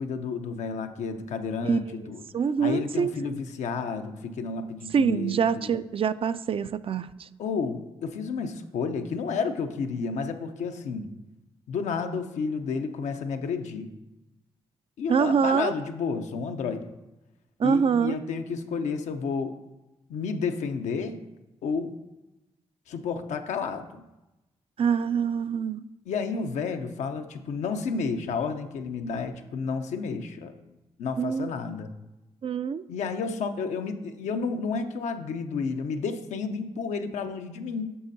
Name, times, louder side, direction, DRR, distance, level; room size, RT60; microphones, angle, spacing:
voice 1, 0.0-2.2 2.6-5.7 7.4-11.1 11.7-13.9 15.0-16.9 17.6-19.6 20.1-21.2 21.6-22.0 22.9-24.1 26.1-30.7 31.0-31.9 32.9-38.0, left 5 dB, 80° left, 6 dB, 0.6 m, -31 dB
voice 2, 1.6-2.0 2.3-3.4 4.9-7.3 15.1-15.7 17.6-18.2 24.8-25.8 31.2-31.5 32.4-32.8, right 6 dB, 50° right, 14 dB, 0.4 m, -25 dB
9.4 x 6.3 x 2.7 m, 0.99 s
supercardioid pair, 45°, 12 cm